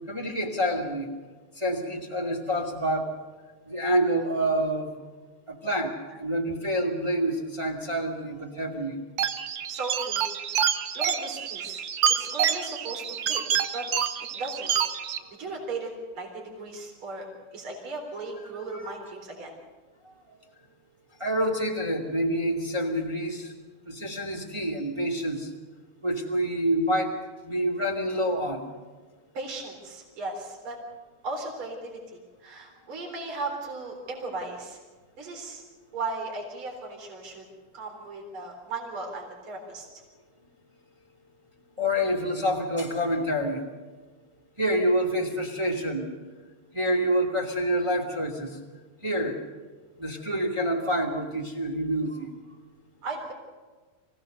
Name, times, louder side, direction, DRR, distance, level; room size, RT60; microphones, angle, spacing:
voice 1, 0.1-1.1 1.6-3.1 3.7-4.9 5.5-9.0 18.7-19.0 21.2-23.5 23.9-25.5 26.0-27.1 27.4-28.7 41.8-43.6 44.6-46.1 46.7-48.6 49.0-49.4 50.0-52.3, equal, 10° right, 1 dB, 2.1 m, -27 dB
sound 1, 9.2-15.2, right 8 dB, 75° right, 1.0 m, -28 dB
voice 2, 9.7-11.8 12.2-13.4 13.7-13.8 14.3-14.7 15.4-17.3 17.5-19.5 29.3-30.8 31.2-32.0 32.4-34.8 35.2-35.6 35.9-37.4 37.7-39.9 53.0-53.3, right 3 dB, 45° right, 0 dB, 4.4 m, -36 dB
25.0 x 17.0 x 6.7 m, 1.4 s
omnidirectional pair, 3.4 m